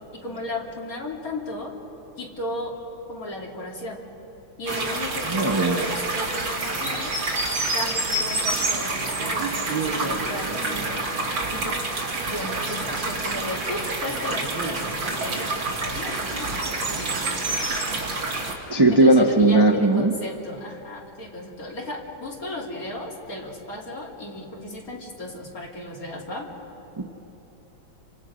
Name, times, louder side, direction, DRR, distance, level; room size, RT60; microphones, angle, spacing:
voice 1, 0.1-1.7 2.2-2.8 3.1-4.0 4.6-7.1 7.7-11.1 11.5-11.8 12.2-17.2 18.9-26.5, left 1 dB, 45° left, -2 dB, 3.2 m, -35 dB
sound 1, 4.7-18.5, right 2 dB, 70° right, 3.1 m, -27 dB
voice 2, 5.3-5.8 18.7-20.1 27.0-27.1, right 2 dB, 25° right, 2 dB, 0.6 m, -17 dB
29.5 x 26.0 x 5.1 m, 3.0 s
omnidirectional pair, 2.2 m